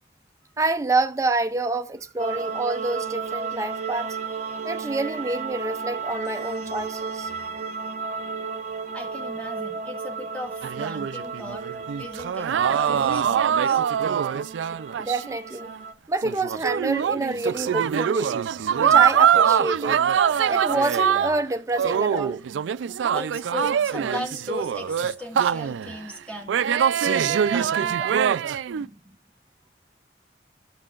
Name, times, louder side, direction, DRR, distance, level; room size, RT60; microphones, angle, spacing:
voice 1, 0.6-4.2 4.6-7.3 15.0-15.7 16.1-18.4 18.8-20.0 20.5-22.4 28.8-29.0, right 2 dB, 15° right, 0.4 m, -27 dB
sound 1, 2.2-15.9, right 5 dB, 40° right, 0.8 m, -34 dB
voice 2, 8.9-13.8 14.2-14.3 20.4-20.5 22.4-22.5 23.1-28.2, left 1 dB, 5° left, 1.8 m, -37 dB
sound 2, 10.6-15.4 15.7-15.8 16.2-21.4 21.8-26.0 26.5-28.9, right 8 dB, 90° right, 0.3 m, -23 dB
13.5 x 5.6 x 2.4 m
head